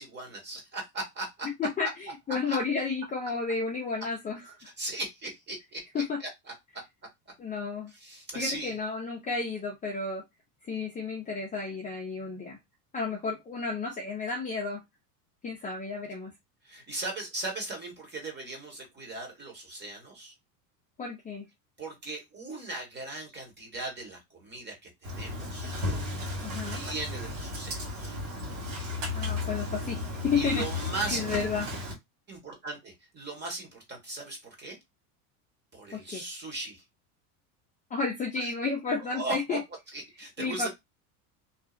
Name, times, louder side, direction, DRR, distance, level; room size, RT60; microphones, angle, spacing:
voice 1, 0.0-1.5 1.8-1.9 2.5-2.6 4.8-6.0 8.0-8.7 16.6-20.3 21.8-25.7 26.7-28.2 30.4-31.2 32.3-34.8 35.7-36.8 38.4-38.5 39.1-39.6 39.9-40.7, right 2 dB, 20° right, 1 dB, 1.3 m, -38 dB
voice 2, 1.4-4.5 5.9-6.2 7.4-7.9 8.3-10.2 10.7-12.6 12.9-14.8 15.4-16.3 21.0-21.4 26.4-26.8 29.1-31.7 35.9-36.3 37.9-39.6 40.4-40.7, left 4 dB, 15° left, -1 dB, 0.5 m, -32 dB
Engine starting, 25.0-31.9, left 2 dB, 90° right, 1.6 m, -34 dB
2.8 x 2.3 x 2.4 m, 0.18 s
supercardioid pair, 115°, 46 cm